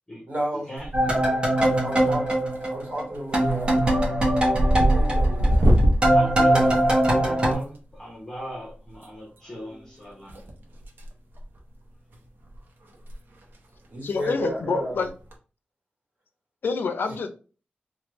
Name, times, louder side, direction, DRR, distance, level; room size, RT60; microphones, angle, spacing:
voice 1, 0.3-0.7 1.0-2.2 2.7-4.0 4.9-5.7 6.5-6.8 13.9-15.0 17.1-17.2, right 1 dB, 50° right, -2 dB, 1.3 m, -33 dB
sound 1, 0.8-1.3 1.7-2.2 2.5-2.8 3.1-7.6 8.9-9.1 10.3-11.1 11.4-11.6 12.1-12.2 12.5-12.6 12.9-13.1 13.4-13.5 15.1-15.3, right 1 dB, 90° right, 0.7 m, -23 dB
sound 2, 0.9-3.1 3.3-7.5, right 1 dB, 30° right, 0.8 m, -22 dB
voice 2, 6.1-6.5 7.0-10.4, equal, 15° left, -5 dB, 0.9 m, -39 dB
voice 3, 14.0-15.1 16.6-17.3, left 4 dB, 85° left, 7 dB, 0.5 m, -27 dB
3.2 x 2.3 x 3.0 m, 0.36 s
wide cardioid pair, 165°, 3 cm